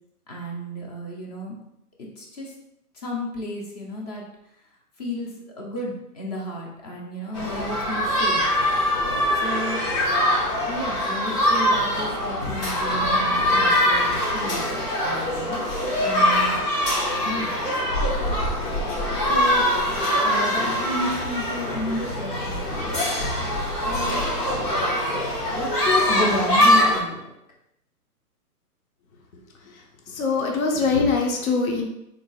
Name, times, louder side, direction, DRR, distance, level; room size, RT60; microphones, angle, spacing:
voice 1, 0.3-1.5 2.0-2.5 3.0-4.2 5.0-5.3 5.6-8.4 9.4-9.8 10.7-15.6 16.0-16.6 17.2-17.6 19.3-19.6 20.2-22.9 23.8-24.2 25.5-27.2, equal, 25° left, -2 dB, 0.6 m, -32 dB
sound 1, 7.3-27.0, left 1 dB, 85° left, 1.4 m, -23 dB
voice 2, 30.1-31.8, left 4 dB, 60° left, 1 dB, 0.9 m, -22 dB
3.7 x 3.6 x 2.3 m, 0.82 s
hypercardioid pair, 140°, 47 cm